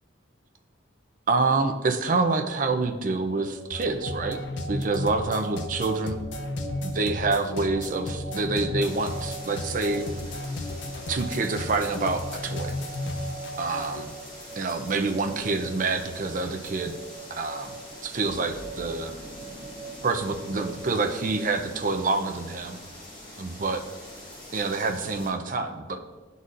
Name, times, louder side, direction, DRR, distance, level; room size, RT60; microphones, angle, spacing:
voice 1, 1.3-4.4 4.7-6.2 6.8-10.1 11.1-12.7 13.6-14.1 14.6-17.0 17.3-17.7 18.0-19.1 20.0-22.8 23.4-23.8 24.5-26.0, right 3 dB, 40° right, 5 dB, 0.5 m, -27 dB
sound 1, 3.3-22.0, right 4 dB, 20° right, 0.9 m, -44 dB
sound 2, 3.7-14.0, left 1 dB, 65° left, 0.5 m, -34 dB
sound 3, 8.8-25.3, left 1 dB, 45° left, 1.9 m, -44 dB
11.0 x 4.0 x 2.5 m, 1.3 s
head